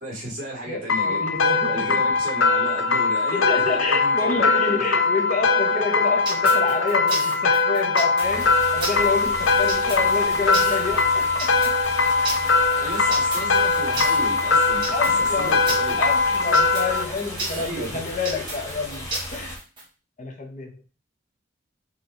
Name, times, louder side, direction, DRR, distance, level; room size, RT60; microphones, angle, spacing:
voice 1, 0.0-4.3 12.8-16.0 17.5-17.9, right 1 dB, 40° right, 2.1 m, -34 dB
voice 2, 0.7-2.1 3.3-11.7 14.9-19.6 20.2-20.8, left 4 dB, 40° left, 0.7 m, -28 dB
sound 1, 0.9-17.0, left 4 dB, 90° left, 0.6 m, -21 dB
sound 2, 6.3-19.8, right 2 dB, 25° right, 1.6 m, -32 dB
sound 3, 8.2-19.6, equal, 15° left, 1.1 m, -36 dB
4.3 x 3.0 x 3.8 m
head